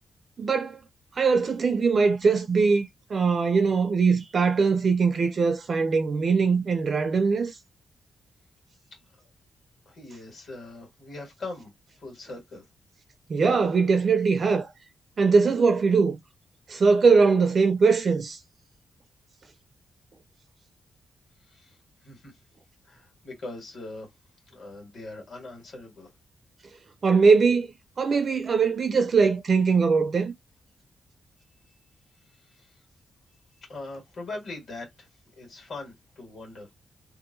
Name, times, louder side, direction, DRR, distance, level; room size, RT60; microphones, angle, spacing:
voice 1, 0.4-0.8 1.2-7.6 13.3-14.7 15.2-16.2 16.7-18.4 27.0-27.7 28.0-30.3, right 5 dB, 40° right, 0.4 m, -21 dB
voice 2, 9.8-11.7 12.0-12.6 21.4-21.8 22.0-22.3 22.8-24.1 24.5-26.1 32.5-32.8 33.7-36.7, left 2 dB, 45° left, 1.5 m, -41 dB
2.7 x 2.5 x 2.6 m
wide cardioid pair, 175°, 0 cm